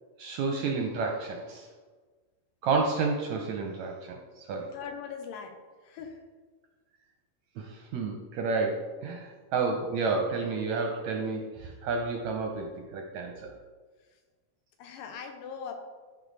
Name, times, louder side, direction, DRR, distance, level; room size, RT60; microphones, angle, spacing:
voice 1, 0.2-1.7 2.6-4.7 7.6-13.5, right 4 dB, 75° right, 2 dB, 1.8 m, -30 dB
voice 2, 4.7-6.2 14.8-15.7, left 6 dB, 80° left, 5 dB, 2.6 m, -41 dB
13.5 x 4.9 x 4.0 m, 1.4 s
omnidirectional pair, 4.0 m